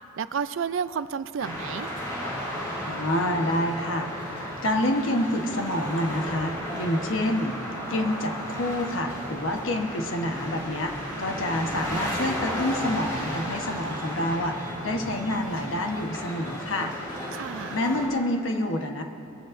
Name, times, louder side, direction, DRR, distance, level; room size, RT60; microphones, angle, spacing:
voice 1, 0.2-1.9 17.3-17.8, right 6 dB, 65° right, 14 dB, 0.4 m, -31 dB
sound 1, 1.4-18.1, equal, 20° left, 2.9 m, -34 dB
voice 2, 2.9-7.6 7.9-16.9 17.7-19.0, left 1 dB, 65° left, 4 dB, 1.1 m, -28 dB
21.5 x 15.0 x 2.6 m, 2.9 s
head